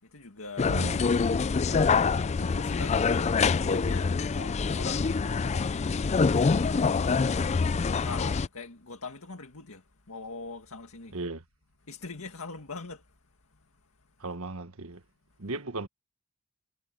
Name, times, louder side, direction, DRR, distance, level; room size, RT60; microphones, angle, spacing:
voice 1, 0.0-2.0 2.3-7.6 8.0-11.2 11.8-13.2 13.5-13.6, left 3 dB, 75° left, 2.0 m, -43 dB
sound 1, 0.6-8.5, left 5 dB, 30° left, 0.4 m, -25 dB
voice 2, 0.7-1.0 11.1-11.4 14.2-15.0 15.4-15.9, right 2 dB, 70° right, 1.5 m, -36 dB
head